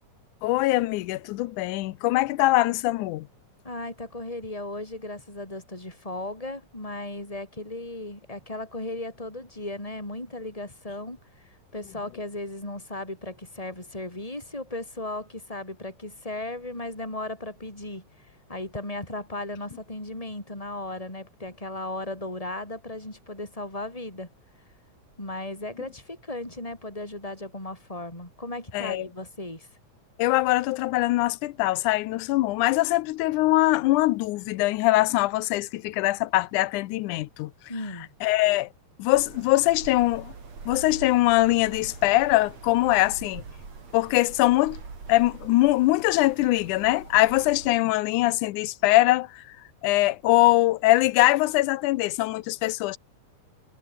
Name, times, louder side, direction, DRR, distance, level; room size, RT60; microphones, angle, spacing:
voice 1, 0.4-3.3 28.7-29.1 30.2-37.5 38.2-38.7 39.0-40.3 40.7-43.4 43.9-44.8 45.1-49.6 49.8-53.0, left 18 dB, 90° left, 2.2 m, -22 dB
voice 2, 3.6-24.3 25.2-29.7 37.7-38.1, left 2 dB, 10° left, 7.2 m, -36 dB
sound 1, 39.1-47.8, right 4 dB, 60° right, 5.7 m, -43 dB
omnidirectional pair, 3.4 m